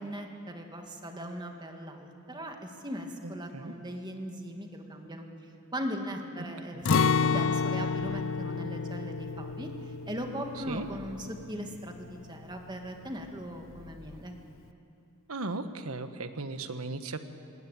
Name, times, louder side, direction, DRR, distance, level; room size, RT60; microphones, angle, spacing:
voice 1, 0.0-5.2 5.7-6.8 7.2-14.4, equal, 20° right, 3 dB, 2.0 m, -39 dB
voice 2, 3.2-3.7 6.4-6.5 6.7-6.9 10.6-10.9 15.3-17.2, right 3 dB, 85° right, 9 dB, 1.3 m, -37 dB
Acoustic guitar, 6.9-12.8 13.1-13.2 13.7-14.2, left 5 dB, 60° left, 0.5 m, -30 dB
20.5 x 18.0 x 9.0 m, 2.7 s
head